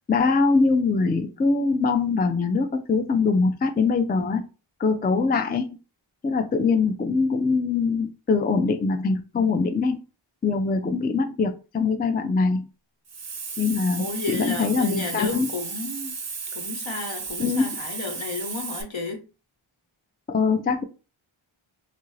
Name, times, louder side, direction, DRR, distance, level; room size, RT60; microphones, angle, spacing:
voice 1, 0.1-4.4 4.8-5.7 6.2-10.0 10.4-12.7 13.6-14.0 14.3-15.5 17.4-17.7 20.3-20.8, left 4 dB, 20° left, 0.3 m, -23 dB
Hiss, 13.1-18.8, right 5 dB, 35° right, 0.5 m, -34 dB
voice 2, 14.0-16.2 16.5-19.2, left 3 dB, 65° left, 1.0 m, -32 dB
2.7 x 2.5 x 3.1 m
wide cardioid pair, 65°, 49 cm